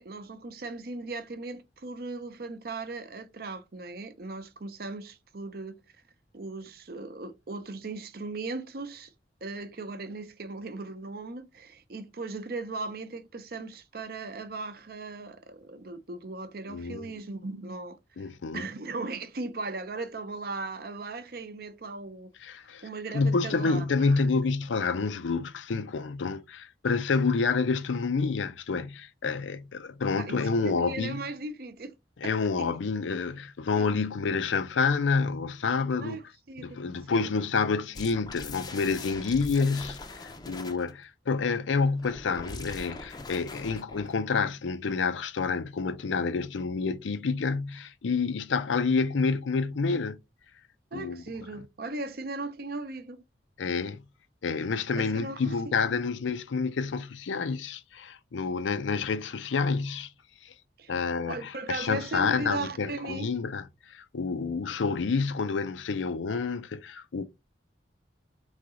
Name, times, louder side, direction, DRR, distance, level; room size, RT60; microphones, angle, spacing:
voice 1, 0.0-5.8 6.3-9.1 9.4-18.0 18.5-22.3 22.8-24.3 30.2-31.9 32.2-32.7 33.7-34.0 36.0-36.2 36.5-36.8 37.1-37.3 50.9-53.2 54.9-55.6 60.8-60.9 61.3-63.3, right 3 dB, 55° right, 0.6 m, -38 dB
voice 2, 16.7-17.1 18.2-18.7 22.4-22.9 23.1-31.3 32.2-36.2 36.6-50.2 50.9-51.2 53.6-54.0 54.4-60.1 60.4-60.5 60.9-67.2, left 4 dB, 85° left, 0.5 m, -28 dB
sound 1, 37.9-40.9 42.0-44.2, left 3 dB, 20° left, 0.5 m, -41 dB
3.9 x 3.2 x 3.7 m
head